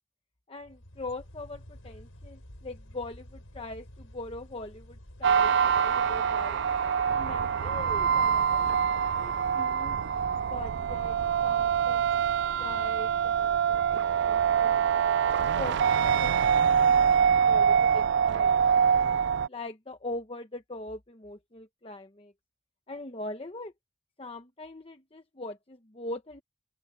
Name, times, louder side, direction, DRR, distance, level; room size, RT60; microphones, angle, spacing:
voice 1, 0.5-6.6 7.0-8.7 9.2-10.0 10.5-14.8 15.5-19.1 19.5-22.3 22.9-23.7 24.2-26.4, left 2 dB, 25° left, 1.0 m, -42 dB
sound 1, 0.6-12.5, left 1 dB, 80° left, 5.0 m, -49 dB
sound 2, 5.2-19.5, right 7 dB, 55° right, 0.3 m, -25 dB
open air
head